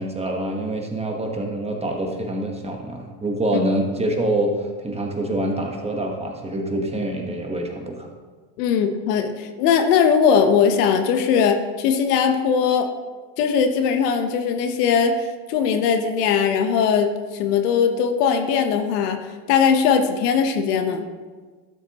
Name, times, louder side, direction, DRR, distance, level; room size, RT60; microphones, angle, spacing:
voice 1, 0.0-8.1, right 1 dB, 15° right, 1 dB, 1.3 m, -26 dB
voice 2, 8.6-12.9 13.4-19.2 19.5-21.0, left 6 dB, 85° left, 6 dB, 1.1 m, -20 dB
12.0 x 7.3 x 3.0 m, 1.4 s
supercardioid pair, 115°, 46 cm